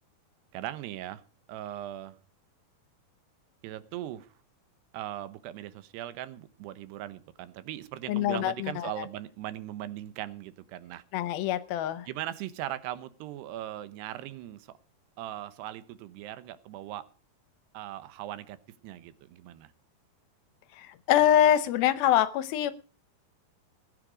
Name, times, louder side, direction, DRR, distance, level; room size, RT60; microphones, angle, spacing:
voice 1, 0.5-1.2 1.5-2.2 3.6-4.3 4.9-11.0 12.1-14.7 15.2-17.1 17.7-18.6 18.8-19.7, right 13 dB, 85° right, 13 dB, 3.1 m, -39 dB
voice 2, 8.1-8.9 11.1-12.1 20.8-22.7, left 11 dB, 75° left, 14 dB, 2.5 m, -24 dB
20.0 x 9.8 x 5.1 m, 0.38 s
omnidirectional pair, 4.6 m